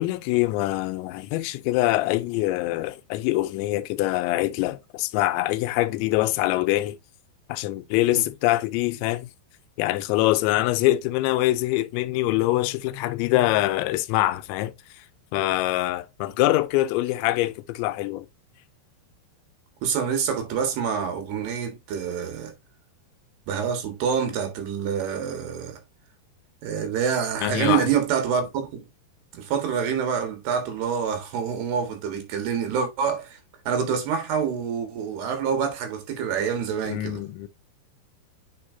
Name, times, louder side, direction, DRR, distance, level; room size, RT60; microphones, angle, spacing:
voice 1, 0.0-7.0 7.5-9.3 9.8-15.0 15.3-18.3 27.4-27.9 36.9-37.5, left 17 dB, 85° left, 2.7 m, -24 dB
voice 2, 19.8-22.5 23.5-25.8 26.6-28.8 29.3-33.4 33.7-37.2, right 7 dB, 65° right, 3.3 m, -26 dB
8.5 x 5.3 x 2.6 m
omnidirectional pair, 5.5 m